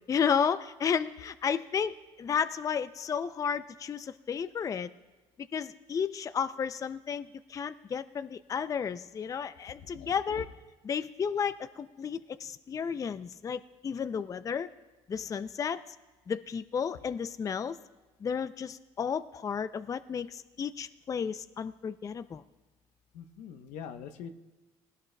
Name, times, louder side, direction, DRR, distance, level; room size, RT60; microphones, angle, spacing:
voice 1, 0.1-4.9 5.5-10.5 10.8-14.7 15.1-15.8 16.3-17.8 18.2-22.4, left 7 dB, 30° left, 13 dB, 0.4 m, -32 dB
voice 2, 9.9-10.4 23.1-24.3, left 8 dB, 80° left, 7 dB, 0.8 m, -43 dB
19.0 x 16.5 x 2.2 m, 1.2 s
cardioid pair, 105°, 12 cm